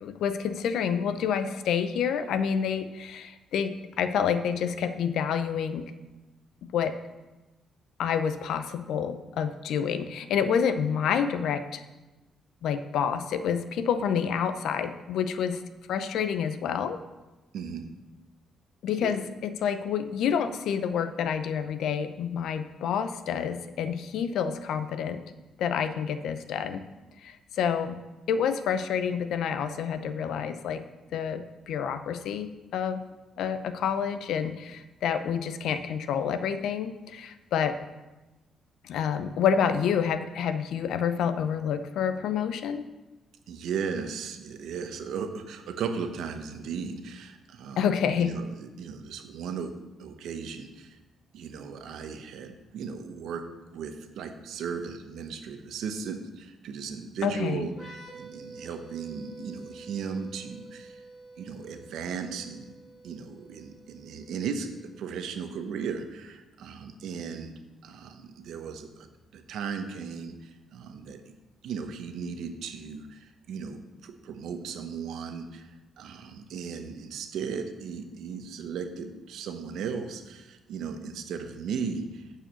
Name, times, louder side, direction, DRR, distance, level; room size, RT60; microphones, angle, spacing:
voice 1, 0.0-5.9 6.7-7.0 8.0-11.8 12.6-15.6 15.9-17.0 18.8-25.2 25.6-26.9 27.2-28.0 28.3-30.8 31.1-33.0 33.4-37.8 38.8-42.9 47.8-48.3 57.2-57.7, left 7 dB, 80° left, 10 dB, 0.6 m, -28 dB
voice 2, 17.5-17.9 19.0-19.2 43.5-47.8 48.2-49.7 50.0-51.0 51.3-61.0 61.4-62.7 63.0-64.7 65.0-67.5 67.8-71.3 71.6-75.7 76.0-82.2, right 6 dB, 80° right, 7 dB, 0.9 m, -36 dB
sound 1, 57.7-65.2, right 2 dB, 25° left, 3.2 m, -49 dB
8.8 x 4.8 x 6.9 m, 1.1 s
cardioid pair, 90°, 0 cm